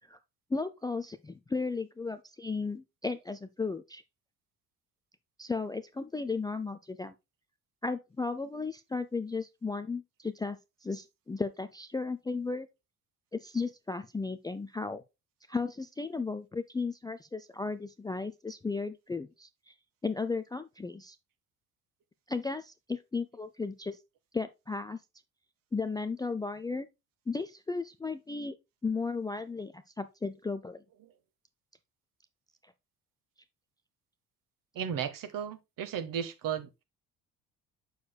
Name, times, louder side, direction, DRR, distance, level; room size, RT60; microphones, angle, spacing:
voice 1, 0.5-4.0 5.4-7.1 7.8-12.7 13.3-15.0 15.5-19.7 20.0-21.2 22.3-24.0 24.3-25.0 25.7-26.9 27.3-28.6 28.8-30.8, left 4 dB, 10° left, 0.5 m, -35 dB
voice 2, 34.7-36.7, right 8 dB, 45° right, 1.4 m, -34 dB
7.8 x 6.7 x 2.3 m
figure-of-eight pair, 55°, 46 cm